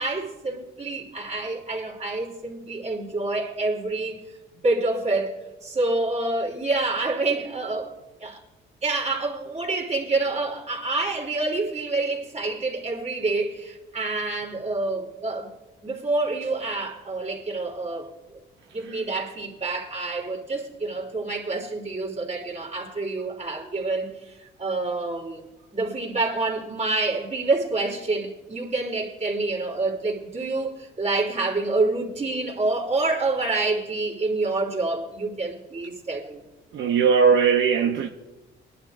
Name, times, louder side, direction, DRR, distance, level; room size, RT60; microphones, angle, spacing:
voice 1, 0.0-4.2 4.6-5.3 5.6-7.9 8.2-8.4 8.8-15.5 15.8-18.4 18.7-25.5 25.7-36.4, right 3 dB, 35° right, 3.1 m, -27 dB
voice 2, 36.7-38.1, right 6 dB, 70° right, 0.8 m, -19 dB
21.5 x 11.0 x 2.5 m
cardioid pair, 90°, 20 cm